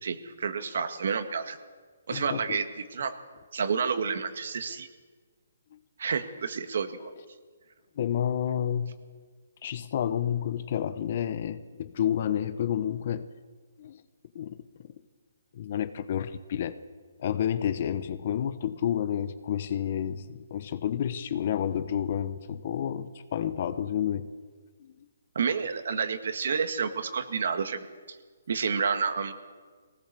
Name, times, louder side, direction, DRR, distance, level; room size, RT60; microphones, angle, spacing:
voice 1, 0.0-1.6 2.1-2.7 2.9-3.1 3.5-4.9 6.0-7.1 25.4-28.2 28.5-29.3, right 6 dB, 60° right, 8 dB, 1.8 m, -29 dB
voice 2, 2.1-2.6 5.7-5.8 8.0-9.0 9.6-13.3 13.8-14.0 14.3-14.6 15.5-16.8 17.2-24.3 24.8-24.9, left 9 dB, 40° left, 12 dB, 1.0 m, -30 dB
21.0 x 18.5 x 6.9 m, 1.5 s
hypercardioid pair, 165°, 0 cm